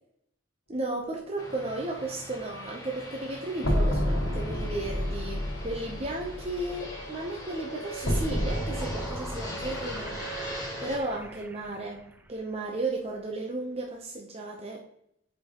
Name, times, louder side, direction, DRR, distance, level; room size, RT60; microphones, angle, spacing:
voice 1, 0.7-10.2 10.8-14.8, right 2 dB, 30° right, -1 dB, 0.7 m, -34 dB
Fixed-wing aircraft airplane, 1.4-11.0, equal, 20° left, 1.4 m, -41 dB
sound 1, 3.6-11.6, equal, 70° left, 1.5 m, -31 dB
sound 2, 8.5-12.7, right 2 dB, 10° right, 0.3 m, -46 dB
6.8 x 5.3 x 2.9 m, 0.74 s
head